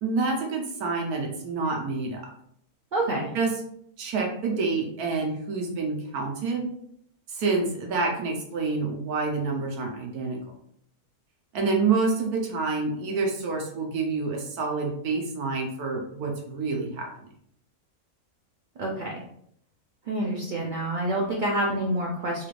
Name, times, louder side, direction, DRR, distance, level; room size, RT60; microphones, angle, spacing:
voice 1, 0.0-2.2 3.3-3.6 4.0-6.7 7.3-10.4 11.5-17.1, right 4 dB, 90° right, 1 dB, 1.3 m, -28 dB
voice 2, 2.9-3.3 18.8-19.2 20.1-22.5, right 1 dB, 70° right, -2 dB, 0.4 m, -27 dB
3.7 x 2.5 x 3.1 m, 0.69 s
omnidirectional pair, 1.5 m